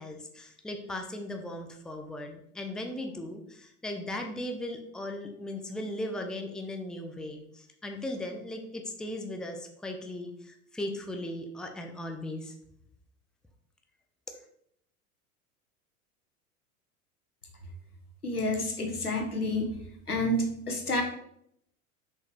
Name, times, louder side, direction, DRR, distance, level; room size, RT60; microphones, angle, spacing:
voice 1, 0.0-12.5, left 1 dB, ahead, 4 dB, 0.6 m, -37 dB
voice 2, 18.2-19.8 20.1-21.0, left 1 dB, 85° left, 4 dB, 1.2 m, -29 dB
6.5 x 5.3 x 3.3 m, 0.71 s
figure-of-eight pair, 85°, 44 cm